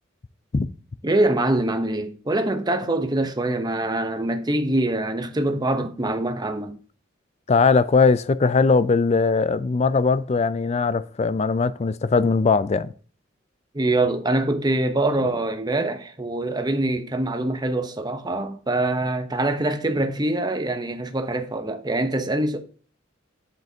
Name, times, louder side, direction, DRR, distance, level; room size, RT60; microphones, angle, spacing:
voice 1, 1.0-6.8 13.7-22.6, right 2 dB, 20° right, 0.8 m, -24 dB
voice 2, 7.5-12.9, left 4 dB, 30° left, 0.4 m, -20 dB
7.6 x 7.4 x 2.8 m
head